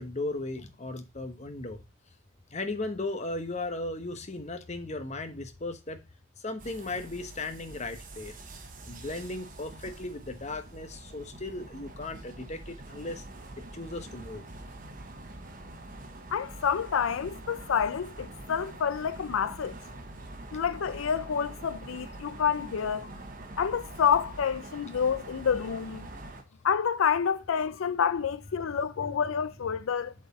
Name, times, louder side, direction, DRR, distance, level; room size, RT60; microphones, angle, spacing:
voice 1, 0.0-1.8 2.5-6.1 6.4-8.4 8.8-13.2 13.6-14.5 23.0-23.2, left 2 dB, 35° left, 0.9 m, -36 dB
sound 1, 6.6-26.4, right 2 dB, 40° right, 1.0 m, -45 dB
voice 2, 16.3-19.8 20.5-23.1 23.6-26.1 26.6-30.1, left 7 dB, 80° left, 0.4 m, -28 dB
7.6 x 4.5 x 4.1 m
head